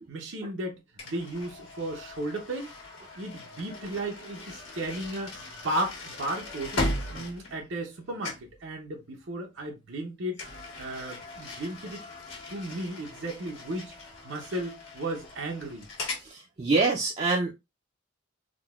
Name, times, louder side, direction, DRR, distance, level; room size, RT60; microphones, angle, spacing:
voice 1, 0.1-0.8 1.0-2.7 3.2-6.8 7.1-10.4 10.8-12.0 12.5-13.9 14.2-15.9, right 1 dB, 75° right, 0.7 m, -34 dB
sound 1, 1.0-8.0 8.2-8.6 10.3-16.3, left 2 dB, 75° left, 1.3 m, -38 dB
voice 2, 16.2-17.5, right 3 dB, 35° right, 0.5 m, -25 dB
3.7 x 2.2 x 2.3 m
head